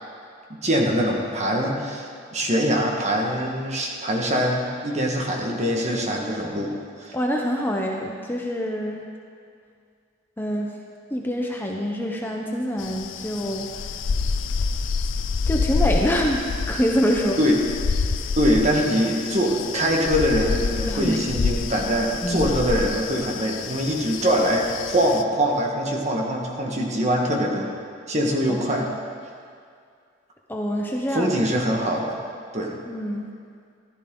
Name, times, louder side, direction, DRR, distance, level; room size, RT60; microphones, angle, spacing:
voice 1, 0.6-6.7 7.0-7.1 17.4-17.6 18.3-27.7 28.1-28.9 31.1-32.2 32.5-32.8, equal, 35° right, 0 dB, 1.6 m, -23 dB
voice 2, 7.1-9.0 10.4-10.7 11.1-13.7 15.5-17.4 20.9-21.3 22.2-22.5 28.5-28.9 30.5-31.3 32.9-33.3, equal, 10° left, 0 dB, 0.8 m, -25 dB
sound 1, 12.8-25.2, left 4 dB, 90° left, 0.5 m, -28 dB
14.5 x 12.5 x 3.9 m, 2.2 s
head